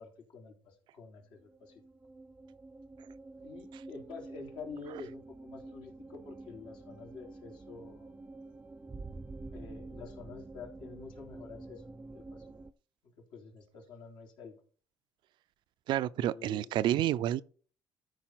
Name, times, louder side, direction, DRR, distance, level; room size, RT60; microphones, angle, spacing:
voice 1, 0.0-1.8 3.4-8.1 9.5-11.8 12.1-12.5 13.2-14.6 16.2-16.7, left 4 dB, 70° left, 3.5 m, -48 dB
sound 1, 1.4-12.7, right 2 dB, 20° right, 0.6 m, -48 dB
voice 2, 15.9-17.4, right 12 dB, 70° right, 0.5 m, -29 dB
13.0 x 4.8 x 5.9 m
cardioid pair, 115°, 8 cm